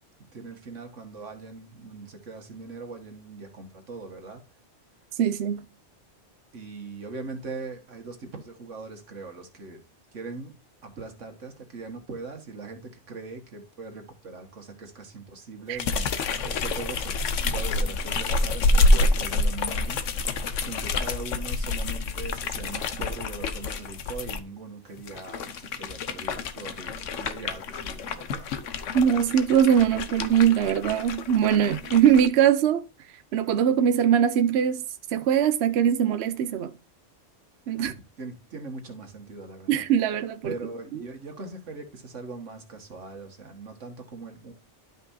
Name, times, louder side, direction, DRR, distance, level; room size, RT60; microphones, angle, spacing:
voice 1, 0.3-4.4 6.5-9.8 10.1-10.5 10.8-28.7 37.8-39.9 40.4-44.5, right 4 dB, 80° right, 2.0 m, -40 dB
voice 2, 5.2-5.7 15.7-15.8 28.9-32.8 33.3-34.8 35.1-36.7 37.7-37.9 39.7-40.5, right 9 dB, 65° right, 0.8 m, -21 dB
sound 1, 15.8-24.4 25.0-32.3, left 2 dB, 85° left, 1.2 m, -27 dB
12.0 x 5.4 x 2.7 m
omnidirectional pair, 1.2 m